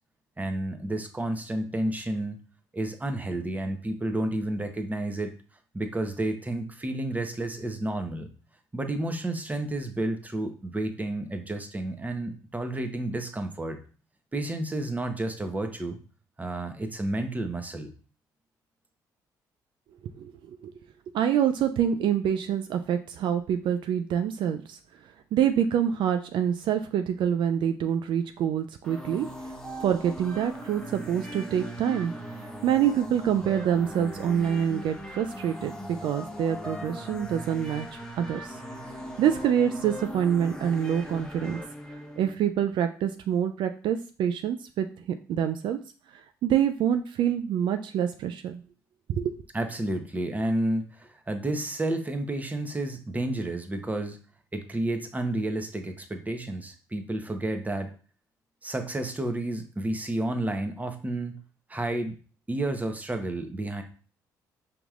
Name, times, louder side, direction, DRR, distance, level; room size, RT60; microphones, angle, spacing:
voice 1, 0.4-2.4 2.7-5.3 5.7-8.3 8.7-13.8 14.3-16.0 16.4-17.9 49.5-54.2 54.5-57.9 58.6-61.3 61.7-62.2 62.5-63.8, right 1 dB, 20° right, 6 dB, 0.9 m, -31 dB
voice 2, 20.2-20.7 21.1-24.8 25.3-29.3 29.8-32.1 32.6-35.7 36.0-38.6 39.2-41.6 42.2-44.9 45.3-45.8 46.4-48.6 49.2-49.3, right 9 dB, 65° right, 8 dB, 0.4 m, -26 dB
sound 1, 28.8-42.3, equal, 10° left, 1.0 m, -39 dB
5.3 x 2.9 x 2.4 m, 0.38 s
supercardioid pair, 55°, 9 cm